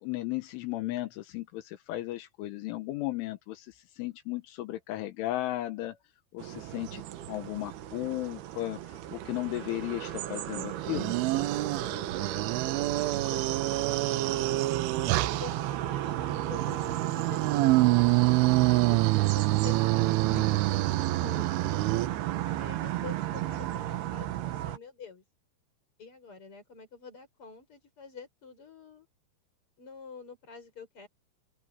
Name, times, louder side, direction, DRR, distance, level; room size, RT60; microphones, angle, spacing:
voice 1, 0.0-6.0 6.3-7.0 7.3-11.2 20.3-20.5, left 16 dB, 80° left, 3.6 m, -35 dB
sound 1, 6.4-24.8, right 13 dB, 70° right, 2.8 m, -34 dB
sound 2, 10.8-15.6 16.5-22.1, right 19 dB, 85° right, 3.2 m, -27 dB
voice 2, 11.7-14.7 15.2-17.9 18.6-20.2 20.5-21.7 22.5-25.2 26.0-29.1 29.8-31.1, left 5 dB, 25° left, 6.5 m, -48 dB
open air
omnidirectional pair, 5.6 m